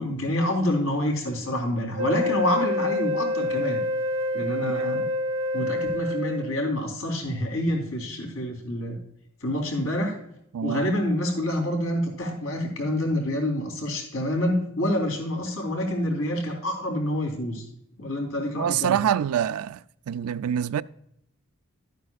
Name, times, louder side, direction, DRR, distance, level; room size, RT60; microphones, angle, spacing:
voice 1, 0.0-3.8 4.3-5.1 5.5-9.0 9.4-10.2 10.6-17.6 18.0-19.0, left 1 dB, 70° left, 3.6 m, -27 dB
Wind instrument woodwind instrument, 2.0-6.7, left 1 dB, 65° right, 0.7 m, -27 dB
voice 2, 4.6-5.1 10.5-10.9 18.6-19.8 20.1-20.8, right 9 dB, 80° right, 0.3 m, -26 dB
12.5 x 9.2 x 2.4 m
head